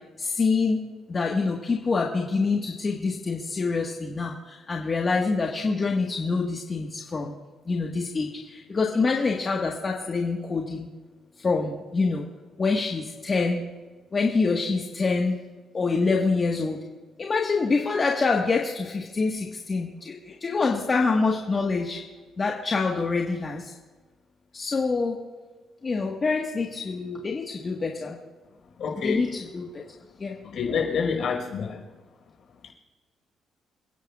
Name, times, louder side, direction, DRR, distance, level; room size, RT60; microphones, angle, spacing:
voice 1, 0.2-0.8 1.1-7.3 7.7-10.9 11.4-12.2 12.6-13.6 14.1-15.4 15.7-16.8 17.2-22.0 22.4-23.7 24.5-25.2 25.8-28.2 29.0-29.8 30.2-30.3, left 4 dB, 35° left, -1 dB, 1.5 m, -26 dB
voice 2, 28.8-29.2 30.4-31.8, left 6 dB, 65° left, 0 dB, 5.0 m, -27 dB
29.0 x 10.5 x 2.5 m, 1.3 s
cardioid pair, 90°, 0 cm